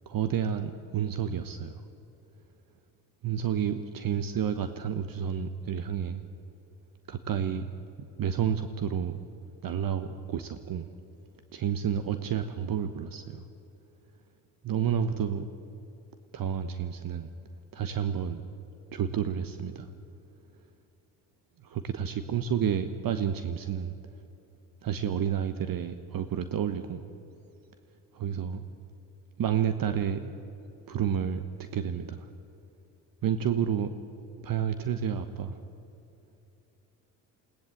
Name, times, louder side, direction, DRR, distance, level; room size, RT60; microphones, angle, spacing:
voice 1, 0.1-1.8 3.2-6.2 7.1-7.7 8.0-9.2 9.6-10.9 11.5-13.4 14.6-15.4 16.3-17.3 17.7-18.4 18.9-19.9 21.6-23.9 24.8-27.1 28.1-28.6 29.4-30.3 30.9-32.3 33.2-34.0 34.4-35.6, right 8 dB, 50° right, 10 dB, 1.2 m, -30 dB
21.0 x 17.5 x 8.5 m, 2.8 s
hypercardioid pair, 55°, 45 cm